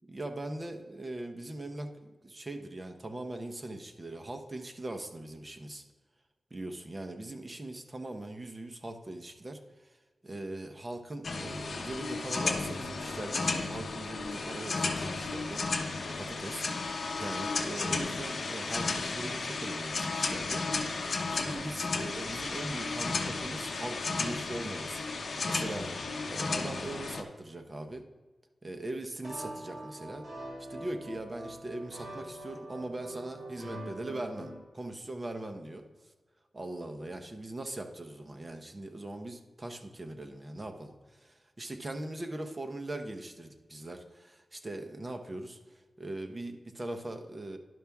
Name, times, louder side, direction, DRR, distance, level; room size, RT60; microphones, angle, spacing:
voice 1, 0.0-5.8 6.5-9.9 10.2-15.6 16.2-16.7 17.2-20.7 21.0-25.9 26.3-28.0 28.6-30.3 30.7-35.9 36.5-45.6 46.0-47.6, right 1 dB, 25° right, 5 dB, 0.8 m, -40 dB
sound 1, 11.2-27.2, left 3 dB, 55° left, 0.8 m, -34 dB
sound 2, 29.2-34.6, right 1 dB, 60° right, 2.9 m, -44 dB
11.0 x 5.7 x 3.5 m, 1.3 s
wide cardioid pair, 140°, 0 cm